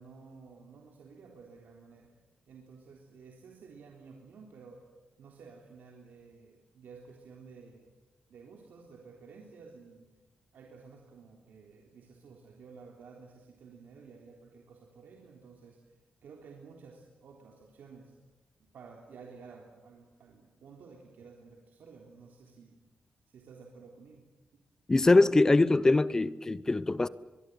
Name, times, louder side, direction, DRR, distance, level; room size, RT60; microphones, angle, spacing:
voice 1, 0.0-2.1 2.5-4.8 5.2-7.9 8.3-10.1 10.5-15.9 16.2-18.1 18.7-22.8 23.3-24.3, right 5 dB, 85° right, 3.6 m, -53 dB
voice 2, 24.9-27.1, left 2 dB, 20° left, 0.8 m, -23 dB
23.5 x 23.0 x 9.3 m
wide cardioid pair, 135°, 3 cm